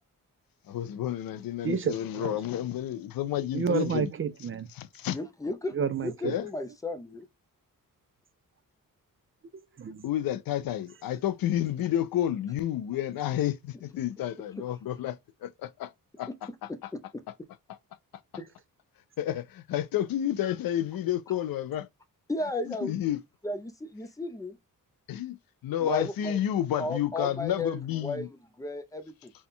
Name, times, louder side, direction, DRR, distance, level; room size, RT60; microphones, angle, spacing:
voice 1, 0.7-4.1 4.7-5.2 6.2-6.5 10.0-15.9 16.2-16.3 16.8-16.9 19.2-21.9 22.7-23.2 25.1-25.4 25.6-28.3, left 11 dB, 85° left, 0.5 m, -30 dB
voice 2, 1.6-2.3 3.5-4.7 5.7-6.3 9.5-10.0, right 7 dB, 40° right, 0.5 m, -30 dB
voice 3, 5.1-7.2 18.4-18.5 22.3-23.0 23.4-24.6 25.8-26.4 26.8-28.3 28.6-29.3, left 2 dB, 10° left, 0.6 m, -34 dB
4.1 x 2.3 x 3.6 m
wide cardioid pair, 125°, 34 cm